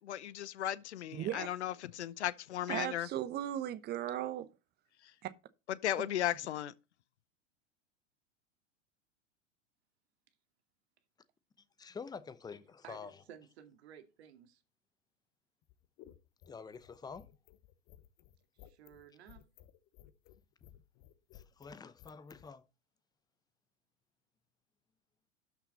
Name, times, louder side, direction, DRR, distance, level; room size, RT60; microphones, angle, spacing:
voice 1, 0.0-3.1 5.0-5.1 5.7-6.7, left 12 dB, 60° left, 0.8 m, -36 dB
voice 2, 2.7-4.5 5.2-5.3, right 12 dB, 25° right, 0.9 m, -37 dB
voice 3, 11.6-13.2 16.5-17.3 21.3-22.7, left 5 dB, 10° left, 0.8 m, -48 dB
voice 4, 12.8-14.6 18.6-19.4, right 9 dB, 55° right, 2.3 m, -55 dB
sound 1, 15.6-22.5, left 12 dB, 35° left, 1.1 m, -58 dB
12.5 x 5.9 x 4.1 m
figure-of-eight pair, 90°, 37 cm